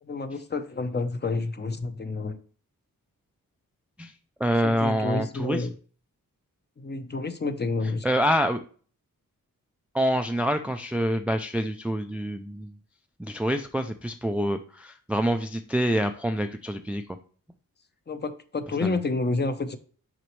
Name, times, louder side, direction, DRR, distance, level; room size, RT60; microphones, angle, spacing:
voice 1, 0.0-2.4 4.6-5.7 6.8-8.1 18.1-19.8, left 3 dB, 30° left, 9 dB, 0.7 m, -29 dB
voice 2, 4.4-5.7 8.0-8.6 9.9-12.7 13.2-17.0 18.8-18.9, equal, 5° right, 7 dB, 0.3 m, -26 dB
6.2 x 5.0 x 3.1 m, 0.41 s
cardioid pair, 90°, 34 cm